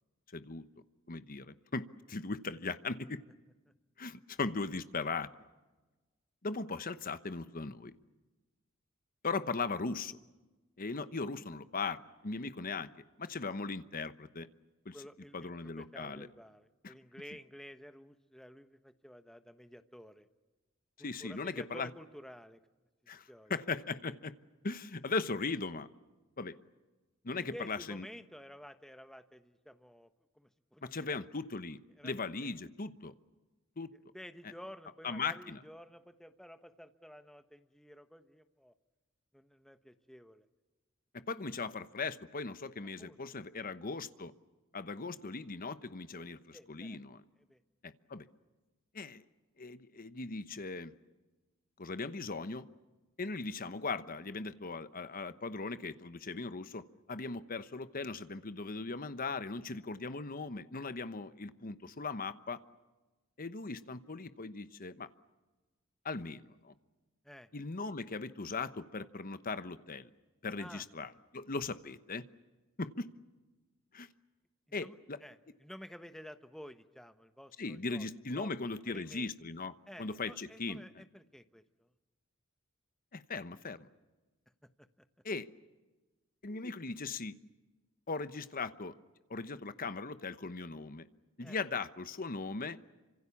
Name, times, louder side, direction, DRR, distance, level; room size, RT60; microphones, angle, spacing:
voice 1, 0.3-0.7 1.1-3.2 4.0-5.3 6.4-7.9 9.2-10.2 10.8-12.9 13.2-14.5 14.8-15.0 15.3-16.3 16.8-16.9 21.0-21.9 23.1-24.3 24.6-25.9 26.4-26.6 27.2-28.0 30.8-33.1 33.8-33.9 35.0-35.6 41.1-44.3 44.7-47.2 47.8-48.3 48.9-49.2 49.6-50.9 51.8-52.7 53.2-62.6 63.4-65.1 66.0-66.7 67.5-70.1 70.4-72.2 72.8-73.1 73.9-74.1 74.7-75.2 77.6-79.7 80.0-81.0 83.1-83.9 85.2-85.5 86.4-87.3 88.1-88.9 89.3-91.0 91.4-92.8, left 4 dB, 45° left, 12 dB, 1.0 m, -39 dB
voice 2, 14.9-20.3 21.0-22.6 23.3-23.5 27.3-30.1 30.3-31.2 32.0-32.3 34.1-38.7 39.3-40.5 43.0-43.2 46.5-47.0 47.4-47.6 67.2-67.5 70.6-70.8 74.7-75.0 75.2-78.5 78.9-79.3 79.9-81.9 84.8-85.1 91.4-91.6, equal, ahead, 9 dB, 1.1 m, -52 dB
28.0 x 26.0 x 7.2 m, 1.2 s
head